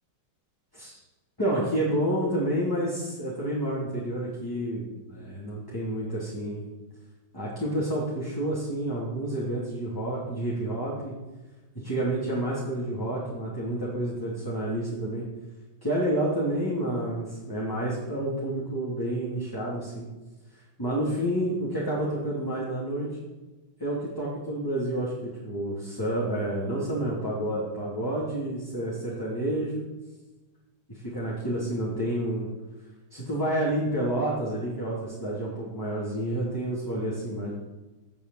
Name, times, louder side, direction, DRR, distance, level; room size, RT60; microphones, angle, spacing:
voice 1, 1.4-6.7 7.3-11.1 11.7-15.2 15.8-20.1 20.8-23.1 23.8-29.9 30.9-32.5 33.1-37.5, right 1 dB, 10° left, -7 dB, 3.0 m, -29 dB
17.0 x 5.7 x 7.4 m, 1.2 s
omnidirectional pair, 2.3 m